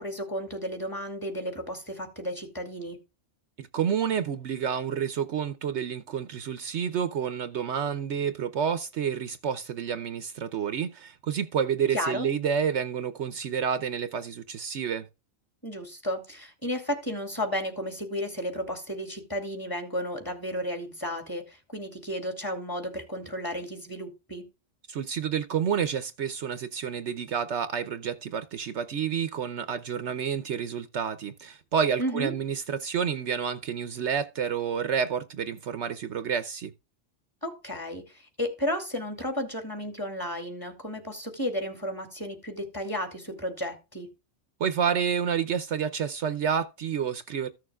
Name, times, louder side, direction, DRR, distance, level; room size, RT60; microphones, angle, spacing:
voice 1, 0.0-3.0 11.9-12.3 15.6-24.4 32.0-32.3 37.4-44.1, equal, 15° left, 2.4 m, -33 dB
voice 2, 3.6-15.1 24.9-36.7 44.6-47.5, right 7 dB, 65° right, 0.9 m, -29 dB
15.0 x 6.6 x 2.3 m
omnidirectional pair, 1.3 m